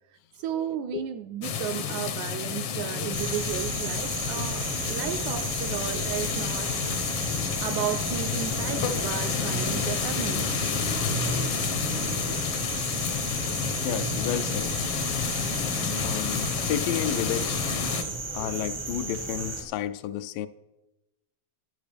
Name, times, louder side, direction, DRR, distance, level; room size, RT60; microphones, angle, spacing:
voice 1, 0.4-6.7 7.6-10.4, right 10 dB, 80° right, 8 dB, 1.7 m, -33 dB
sound 1, 1.4-18.0, left 7 dB, 70° left, 1.4 m, -30 dB
sound 2, 3.1-19.6, right 2 dB, 30° right, 0.5 m, -34 dB
voice 2, 13.8-14.8 16.0-17.7 18.3-20.5, left 11 dB, 85° left, 12 dB, 2.2 m, -31 dB
14.0 x 11.0 x 3.4 m, 1.0 s
omnidirectional pair, 3.7 m